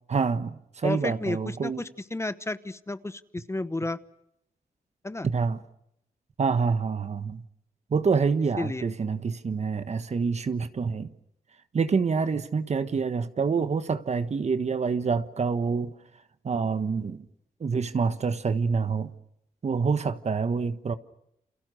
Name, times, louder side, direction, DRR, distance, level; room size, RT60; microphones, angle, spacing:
voice 1, 0.1-1.8 5.2-5.6 6.4-7.4 7.9-11.1 11.7-15.9 16.4-17.3 17.6-19.1 19.6-20.9, right 5 dB, 50° right, 1.4 m, -27 dB
voice 2, 0.8-4.0 5.0-5.3 8.6-8.8, left 2 dB, 20° left, 1.0 m, -32 dB
29.5 x 27.5 x 6.4 m
cardioid pair, 90°, 15 cm